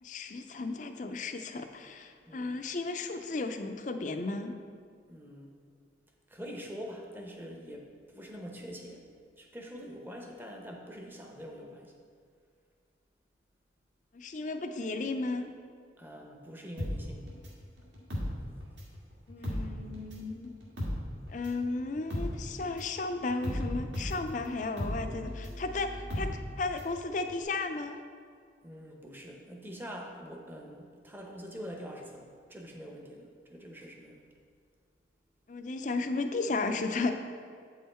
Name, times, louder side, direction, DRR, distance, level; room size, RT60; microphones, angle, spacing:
voice 1, 0.0-4.5 14.1-15.5 19.3-20.5 21.3-26.3 26.6-28.0 35.5-37.1, left 3 dB, 40° left, 6 dB, 0.4 m, -34 dB
voice 2, 2.2-2.6 5.1-5.5 6.3-9.0 9.4-11.9 16.0-17.3 28.6-34.2, equal, 10° right, 1 dB, 0.7 m, -45 dB
sound 1, 16.8-19.0 19.3-27.0 27.3-27.4, left 1 dB, 70° right, 1.9 m, -36 dB
8.4 x 5.6 x 4.3 m, 2.2 s
head